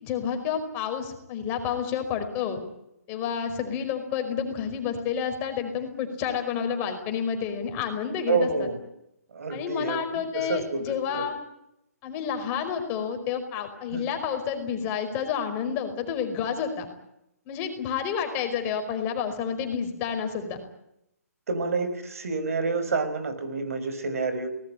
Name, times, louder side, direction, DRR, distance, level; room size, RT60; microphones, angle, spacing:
voice 1, 0.0-2.6 3.1-8.7 9.5-11.4 12.0-16.9 17.5-20.6, left 7 dB, 25° left, 6 dB, 5.0 m, -30 dB
voice 2, 8.3-8.8 9.3-11.2 13.9-14.0 21.5-24.5, right 4 dB, 60° right, 10 dB, 5.4 m, -28 dB
23.5 x 19.5 x 9.9 m, 0.82 s
figure-of-eight pair, 140°, 9 cm